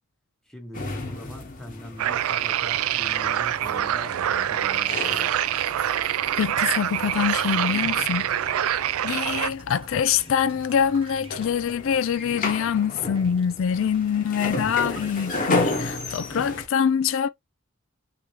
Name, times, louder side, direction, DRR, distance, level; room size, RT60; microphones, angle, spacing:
voice 1, 0.4-5.4, equal, 5° left, 0.9 m, -42 dB
sound 1, 0.7-16.7, left 2 dB, 40° left, 1.0 m, -34 dB
sound 2, 2.0-9.5, right 11 dB, 80° right, 0.3 m, -25 dB
voice 2, 6.4-17.3, left 7 dB, 65° left, 0.3 m, -25 dB
sound 3, 6.6-15.6, right 3 dB, 25° right, 0.6 m, -47 dB
3.5 x 2.7 x 3.1 m
head